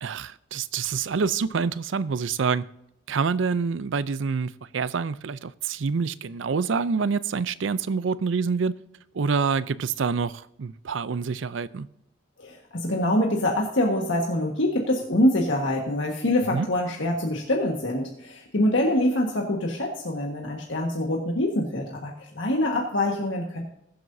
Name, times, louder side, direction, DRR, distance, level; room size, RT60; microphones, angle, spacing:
voice 1, 0.0-2.6 3.1-8.7 9.1-11.9 16.5-16.7, right 5 dB, 70° right, 16 dB, 0.5 m, -26 dB
voice 2, 12.4-23.6, left 1 dB, 75° left, 0 dB, 1.5 m, -25 dB
21.0 x 7.8 x 2.7 m, 0.80 s
head